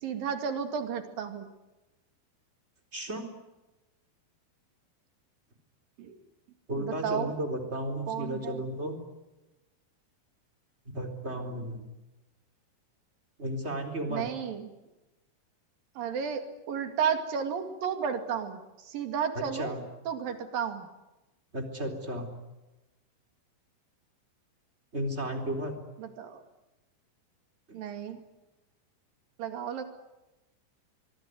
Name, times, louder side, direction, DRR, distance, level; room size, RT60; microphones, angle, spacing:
voice 1, 0.0-1.5 6.0-6.2 6.8-7.3 8.1-8.6 14.1-14.7 16.0-19.7 20.1-20.9 26.0-26.4 27.7-28.2 29.4-29.8, right 7 dB, 60° right, 7 dB, 3.8 m, -33 dB
voice 2, 2.9-3.2 6.7-9.0 10.9-11.8 13.4-14.3 19.4-19.8 21.5-22.3 24.9-25.8, right 1 dB, 15° right, 4 dB, 3.7 m, -33 dB
24.5 x 23.5 x 9.5 m, 1.0 s
omnidirectional pair, 4.9 m